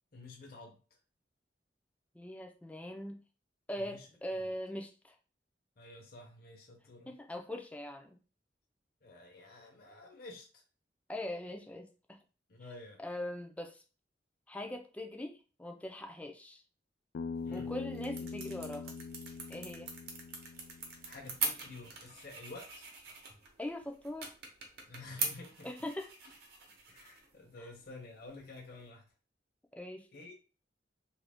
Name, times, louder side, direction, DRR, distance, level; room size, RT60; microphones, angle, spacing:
voice 1, 0.1-0.8 3.8-4.1 5.8-7.1 9.0-10.6 12.5-13.0 17.4-17.7 21.0-22.8 24.9-25.7 26.9-29.0 30.1-30.3, left 2 dB, 60° left, 0 dB, 0.7 m, -50 dB
voice 2, 2.1-3.2 3.7-5.1 7.1-8.2 11.1-12.2 13.0-13.8 14.5-16.6 17.5-18.9 19.5-19.9 23.6-24.3 25.6-26.1 29.7-30.1, left 1 dB, 10° left, 4 dB, 0.4 m, -41 dB
Bass guitar, 17.1-21.4, left 5 dB, 85° left, 0.3 m, -43 dB
sound 1, 17.3-28.9, right 5 dB, 65° right, 0.8 m, -43 dB
2.8 x 2.5 x 3.5 m, 0.35 s
head